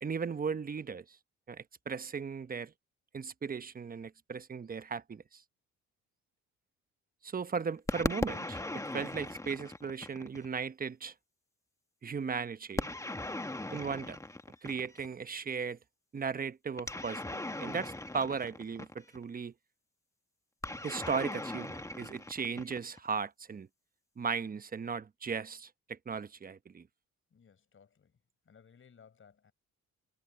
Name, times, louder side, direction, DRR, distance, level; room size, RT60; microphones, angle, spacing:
voice 1, 0.0-1.2 1.5-2.7 3.1-5.4 7.2-11.1 12.0-12.9 13.7-14.2 14.6-15.8 16.1-19.5 20.8-23.7 24.2-26.9, right 6 dB, 30° right, 0.9 m, -37 dB
sound 1, 7.9-10.5 12.8-15.1 16.8-19.2 20.6-23.1, left 2 dB, 10° left, 1.5 m, -38 dB
voice 2, 27.3-28.2 28.4-29.5, left 6 dB, 45° left, 4.4 m, -60 dB
cardioid pair, 90°, 30 cm